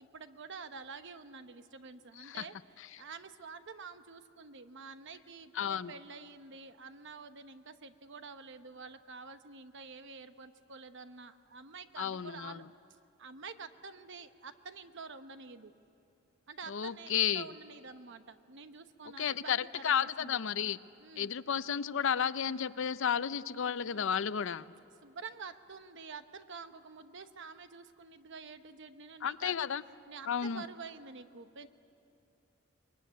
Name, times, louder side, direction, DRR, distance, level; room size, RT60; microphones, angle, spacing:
voice 1, 0.0-2.6 3.0-12.6 13.2-15.7 16.5-20.4 21.0-21.3 22.5-22.6 23.9-24.1 25.0-29.6 30.1-31.7, right 4 dB, 60° right, 10 dB, 1.0 m, -48 dB
voice 2, 5.5-5.9 12.0-12.6 16.7-17.5 19.2-20.8 21.2-24.7 29.2-29.8 30.3-30.6, left 8 dB, 70° left, 15 dB, 0.6 m, -32 dB
24.0 x 21.5 x 9.3 m, 2.8 s
head